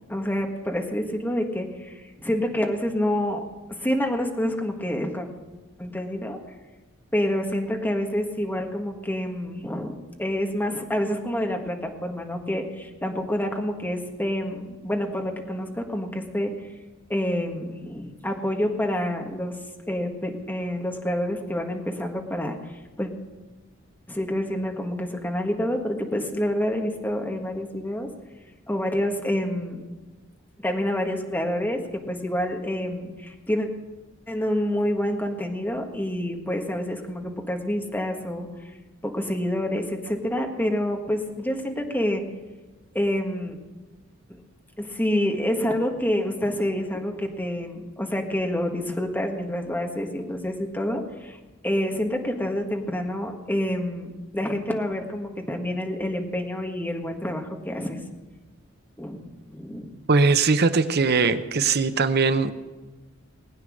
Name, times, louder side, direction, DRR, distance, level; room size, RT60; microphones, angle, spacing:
voice 1, 0.1-3.4 3.8-5.3 5.8-6.4 7.1-16.5 17.1-19.5 19.9-22.6 23.0-23.1 24.1-28.1 28.7-29.8 30.6-33.7 34.3-38.5 39.0-42.2 42.9-43.6 44.8-51.4 51.6-58.0 59.0-59.9, left 1 dB, 10° left, 2 dB, 1.6 m, -27 dB
voice 2, 60.1-62.5, right 4 dB, 55° right, 10 dB, 0.8 m, -20 dB
20.0 x 9.4 x 6.4 m, 1.2 s
head